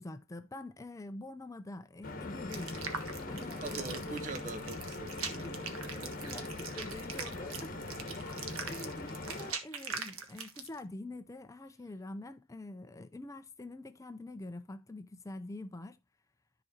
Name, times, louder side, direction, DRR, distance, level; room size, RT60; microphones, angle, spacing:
voice 1, 0.0-2.9 3.3-4.3 5.3-16.0, left 2 dB, 15° left, 0.4 m, -46 dB
Stream / Boat Water vehicle, 2.0-9.5, left 2 dB, 40° left, 1.2 m, -41 dB
sound 1, 2.5-10.8, right 5 dB, 80° right, 1.5 m, -42 dB
voice 2, 3.6-6.1 8.4-8.7, right 4 dB, 35° right, 0.6 m, -44 dB
13.5 x 4.9 x 2.8 m
head